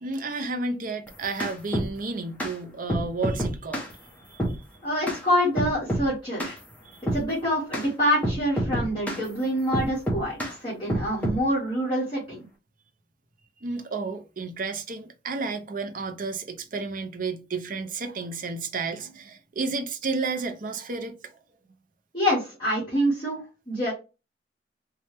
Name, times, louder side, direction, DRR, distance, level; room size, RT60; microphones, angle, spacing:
voice 1, 0.0-3.8 4.3-4.4 13.6-21.3, right 3 dB, 50° right, 0.6 m, -32 dB
sound 1, 1.1-1.9 2.4-2.5 2.9-3.9 4.4-4.6 5.1-5.2 5.6-6.1 6.4-6.6 7.1-7.3 7.7-7.9 8.2-9.2 9.7-10.5 10.9-11.4, right 1 dB, 10° left, 0.9 m, -27 dB
voice 2, 4.8-6.6 7.1-12.4 22.1-23.4 23.7-23.9, equal, 30° left, 1.7 m, -26 dB
4.2 x 2.3 x 3.2 m
head